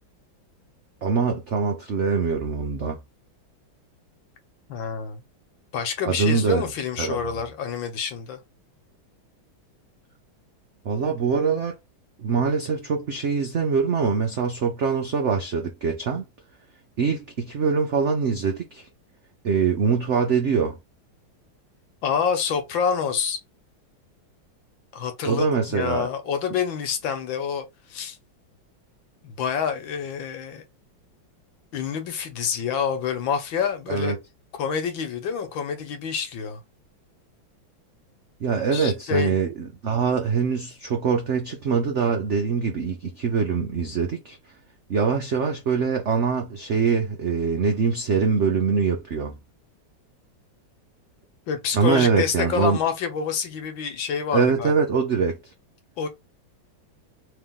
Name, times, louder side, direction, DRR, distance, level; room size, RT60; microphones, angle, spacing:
voice 1, 1.0-3.0 6.1-6.7 7.0-7.3 10.8-11.8 12.2-16.2 17.0-18.9 19.4-20.8 25.3-26.1 33.9-34.2 38.4-44.4 44.9-49.4 51.7-52.8 54.3-55.4, right 5 dB, 80° right, 0.6 m, -23 dB
voice 2, 4.7-5.2 5.7-8.4 22.0-23.4 24.9-27.6 27.9-28.2 29.2-30.6 31.7-34.1 34.6-36.6 38.7-39.4 51.5-54.7 56.0-56.1, left 7 dB, 75° left, 1.7 m, -27 dB
3.4 x 3.1 x 3.6 m
omnidirectional pair, 2.2 m